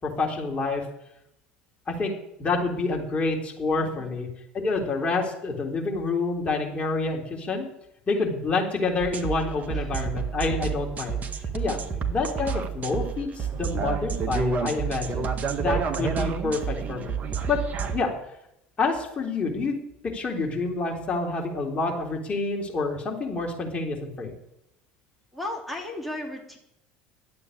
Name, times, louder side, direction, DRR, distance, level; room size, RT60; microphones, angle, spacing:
voice 1, 0.0-0.8 1.9-2.1 2.4-4.3 4.5-7.7 8.1-11.2 11.5-11.8 12.1-17.2 17.5-17.6 17.9-18.1 18.8-24.3, left 3 dB, 30° left, 0 dB, 3.6 m, -28 dB
voice 2, 3.8-4.2 9.7-9.9 11.8-12.1 25.3-26.6, left 1 dB, ahead, -2 dB, 3.4 m, -36 dB
sound 1, 9.0-18.0, right 6 dB, 35° right, 1.6 m, -29 dB
12.0 x 8.3 x 9.8 m, 0.81 s
figure-of-eight pair, 70°, 4 cm